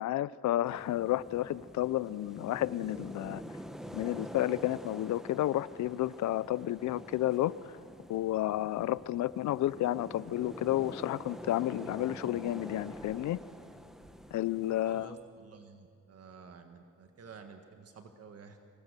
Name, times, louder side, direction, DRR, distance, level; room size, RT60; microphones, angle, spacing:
voice 1, 0.0-3.4 3.9-7.5 8.1-13.4 14.3-15.2, left 14 dB, 70° left, 19 dB, 0.6 m, -31 dB
sound 1, 0.6-15.1, equal, ahead, 1.3 m, -47 dB
voice 2, 14.7-18.6, right 5 dB, 55° right, 6 dB, 1.6 m, -51 dB
24.5 x 20.0 x 6.8 m, 2.4 s
cardioid pair, 90°, 30 cm